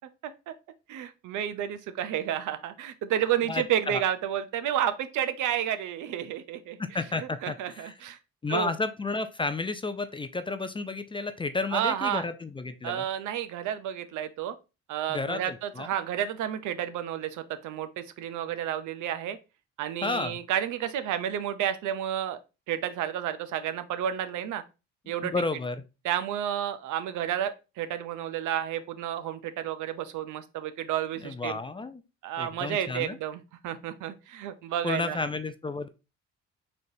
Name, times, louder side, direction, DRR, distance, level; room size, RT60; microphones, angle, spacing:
voice 1, 0.2-0.5 0.9-6.8 7.2-8.2 8.5-8.7 11.7-12.3 12.8-14.5 14.9-19.4 19.8-22.4 22.7-24.6 25.1-25.3 26.0-31.6 32.2-35.2, right 10 dB, 80° right, 11 dB, 0.6 m, -31 dB
voice 2, 3.5-4.0 6.8-7.9 8.4-13.1 15.1-15.9 20.0-20.4 25.2-25.8 31.2-32.0 32.4-33.2 34.8-35.9, left 3 dB, 15° left, 10 dB, 0.3 m, -32 dB
4.0 x 3.3 x 2.7 m, 0.29 s
cardioid pair, 90°, 30 cm